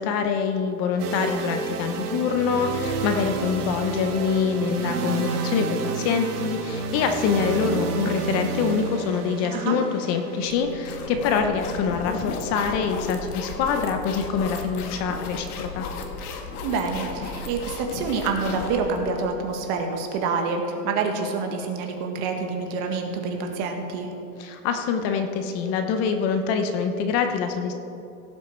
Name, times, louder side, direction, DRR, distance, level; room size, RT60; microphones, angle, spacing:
voice 1, 0.0-15.9 24.4-27.7, left 6 dB, 35° left, 6 dB, 0.8 m, -25 dB
sound 1, 1.0-14.9, right 5 dB, 85° right, 1.5 m, -31 dB
sound 2, 10.5-19.2, left 4 dB, 80° left, 1.7 m, -35 dB
voice 2, 16.6-24.1, right 4 dB, 45° right, 4 dB, 1.7 m, -27 dB
17.0 x 7.5 x 4.5 m, 2.8 s
supercardioid pair, 145°, 45 cm